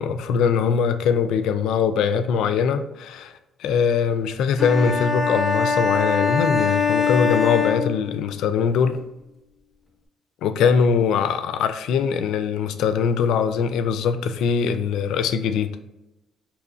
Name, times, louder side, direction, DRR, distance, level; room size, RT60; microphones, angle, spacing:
voice 1, 0.0-9.0 10.4-15.8, left 6 dB, 85° left, 0.3 m, -22 dB
sound 1, 4.6-8.5, left 5 dB, 15° left, 0.8 m, -23 dB
4.8 x 2.9 x 2.5 m
cardioid pair, 110°, 0 cm